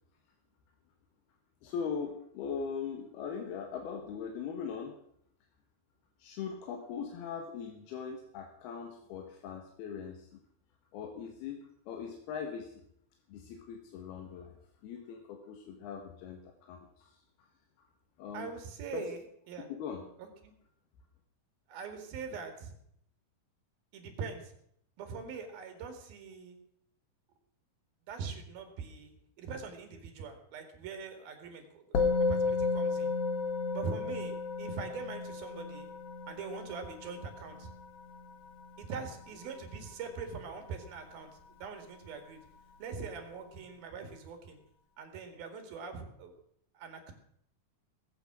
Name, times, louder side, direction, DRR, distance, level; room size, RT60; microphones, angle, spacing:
voice 1, 1.6-5.0 6.2-10.4 10.9-12.9 13.3-17.2 18.2-18.5 18.9-19.0 19.7-20.0, left 6 dB, 90° left, 3 dB, 3.3 m, -40 dB
voice 2, 18.3-19.7 20.2-20.5 21.7-22.7 23.9-24.5 25.0-26.6 28.1-33.1 33.7-35.9 36.3-37.7 38.8-41.3 41.6-42.4 42.8-44.6 45.0-46.3 46.7-47.1, right 5 dB, 75° right, 6 dB, 4.0 m, -42 dB
Musical instrument, 31.9-41.5, left 4 dB, 55° left, 1.7 m, -34 dB
19.0 x 8.6 x 6.2 m, 0.69 s
omnidirectional pair, 4.3 m